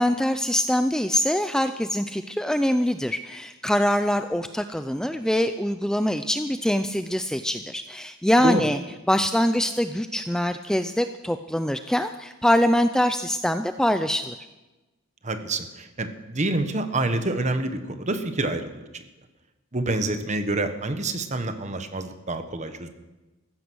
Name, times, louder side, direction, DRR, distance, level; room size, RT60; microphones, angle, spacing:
voice 1, 0.0-8.8 9.1-14.4, left 1 dB, 5° left, 9 dB, 0.4 m, -24 dB
voice 2, 15.2-18.8 19.7-22.9, right 2 dB, 35° right, 8 dB, 1.2 m, -27 dB
14.5 x 14.0 x 6.3 m, 1.1 s
head